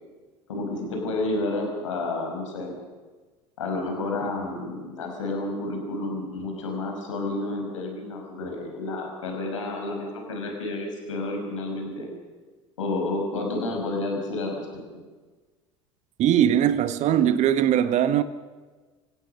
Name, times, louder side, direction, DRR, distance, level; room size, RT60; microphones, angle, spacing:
voice 1, 0.5-2.8 3.6-12.1 12.8-14.7, left 2 dB, 80° left, 5.4 m, -30 dB
voice 2, 16.2-18.2, right 10 dB, 50° right, 1.5 m, -20 dB
29.0 x 17.0 x 6.6 m
hypercardioid pair, 75°, 16 cm